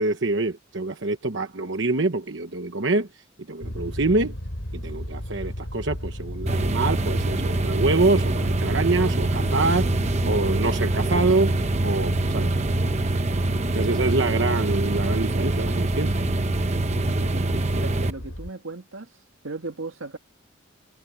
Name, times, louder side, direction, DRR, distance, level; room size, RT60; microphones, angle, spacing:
voice 1, 0.0-3.1 3.5-4.3 4.7-9.9 10.2-11.6 11.8-12.6 13.7-16.2, right 3 dB, 65° right, 1.1 m, -25 dB
sound 1, 3.6-18.5, equal, 70° left, 6.5 m, -35 dB
sound 2, 6.5-18.1, right 2 dB, 35° right, 0.9 m, -24 dB
voice 2, 17.0-17.5 17.7-19.1 19.4-20.2, right 3 dB, 85° right, 1.8 m, -36 dB
head